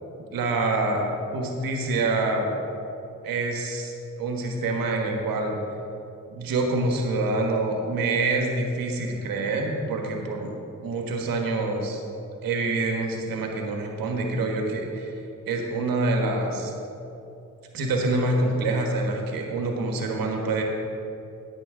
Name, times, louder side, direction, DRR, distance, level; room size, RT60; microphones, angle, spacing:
voice 1, 0.3-1.1 1.3-2.5 3.2-5.6 6.3-10.6 10.8-12.0 12.4-15.1 15.5-16.7 17.7-20.6, right 2 dB, 80° right, 2 dB, 1.4 m, -26 dB
10.0 x 9.0 x 3.8 m, 2.8 s
cardioid pair, 55°, 34 cm